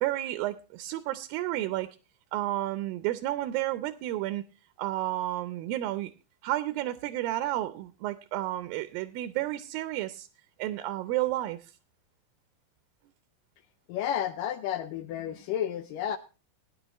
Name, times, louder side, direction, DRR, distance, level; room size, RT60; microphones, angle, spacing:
voice 1, 0.0-1.9 2.3-4.4 4.8-6.1 6.4-10.3 10.6-11.6, right 15 dB, 80° right, 12 dB, 2.4 m, -31 dB
voice 2, 13.9-16.2, left 10 dB, 75° left, 9 dB, 2.1 m, -31 dB
19.5 x 10.5 x 3.0 m, 0.32 s
omnidirectional pair, 4.4 m